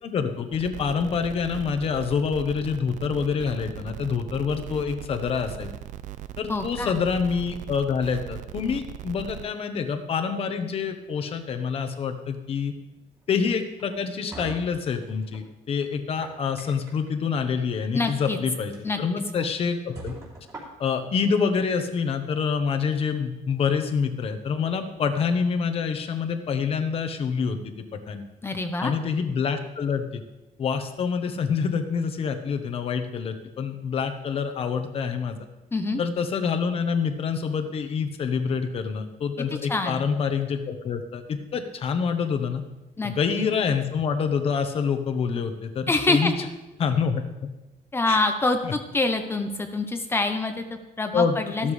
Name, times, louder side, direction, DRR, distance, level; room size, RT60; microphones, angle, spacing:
voice 1, 0.0-5.7 6.4-12.7 13.3-20.1 20.8-27.7 28.1-28.2 28.8-30.2 30.6-35.4 36.0-42.6 43.0-46.3 46.8-47.2 48.1-48.2 48.6-48.7 51.1-51.4 51.6-51.7, left 6 dB, 45° left, 8 dB, 1.1 m, -26 dB
sound 1, 0.5-9.4, right 12 dB, 60° right, 0.4 m, -39 dB
voice 2, 6.5-7.0 17.9-18.4 18.8-19.0 19.4-19.5 28.4-28.9 35.7-36.0 39.7-40.0 43.0-43.1 45.9-46.3 47.9-51.7, left 2 dB, 15° left, 6 dB, 0.7 m, -26 dB
sound 2, 13.8-15.5 16.0-17.1 18.1-18.3 18.7-18.8 19.3-19.4 19.9-21.1, right 1 dB, 25° right, 3.4 m, -42 dB
14.0 x 12.5 x 3.3 m, 1.0 s
cardioid pair, 170°, 14 cm